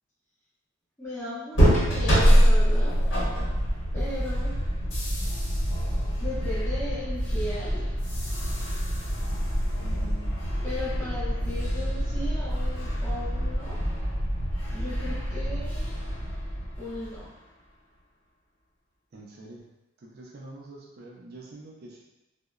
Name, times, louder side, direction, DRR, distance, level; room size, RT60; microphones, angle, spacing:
voice 1, 1.0-2.9 3.9-4.5 6.2-7.9 10.6-13.8 14.7-16.0 16.8-17.3, left 1 dB, 15° left, -11 dB, 1.1 m, -36 dB
sound 1, 1.5-17.3, equal, 60° left, 0.9 m, -25 dB
voice 2, 9.8-10.4 19.1-19.6 20.0-22.0, right 2 dB, 50° right, -2 dB, 0.4 m, -45 dB
2.9 x 2.0 x 2.3 m, 0.96 s
head